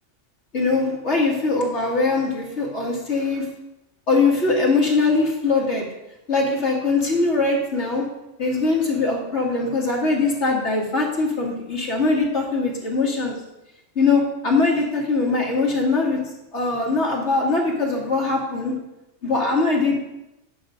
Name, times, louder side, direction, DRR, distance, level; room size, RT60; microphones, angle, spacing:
voice 1, 0.5-3.5 4.1-5.9 6.3-8.1 8.4-13.4 14.0-16.2 16.5-18.8 19.2-20.0, left 3 dB, 65° left, -1 dB, 2.2 m, -21 dB
9.8 x 6.4 x 5.0 m, 0.91 s
omnidirectional pair, 1.2 m